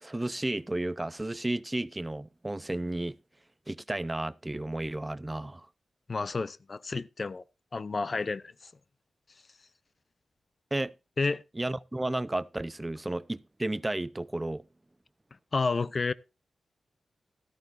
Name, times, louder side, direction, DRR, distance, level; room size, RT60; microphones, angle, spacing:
voice 1, 0.0-3.2 3.7-5.7 10.7-10.9 11.6-14.6, right 1 dB, 20° right, 0.6 m, -33 dB
voice 2, 6.1-7.4 7.7-8.5 11.2-11.4 15.5-16.1, left 4 dB, 50° left, 0.6 m, -30 dB
13.5 x 13.0 x 2.5 m
cardioid pair, 50°, 0 cm